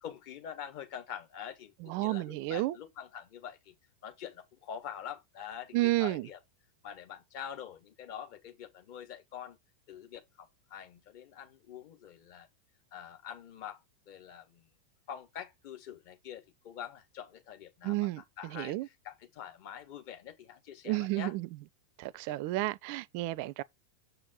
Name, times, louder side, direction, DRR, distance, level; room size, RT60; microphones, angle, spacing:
voice 1, 0.0-3.7 4.0-6.4 6.8-9.6 9.9-12.5 12.9-13.8 14.1-14.6 15.1-21.3 22.1-22.4, left 9 dB, 45° left, 1.8 m, -45 dB
voice 2, 1.8-2.8 5.7-6.3 17.8-18.9 20.8-21.5 22.0-23.6, right 18 dB, 45° right, 0.4 m, -31 dB
7.0 x 5.2 x 4.1 m
figure-of-eight pair, 90°, 0 cm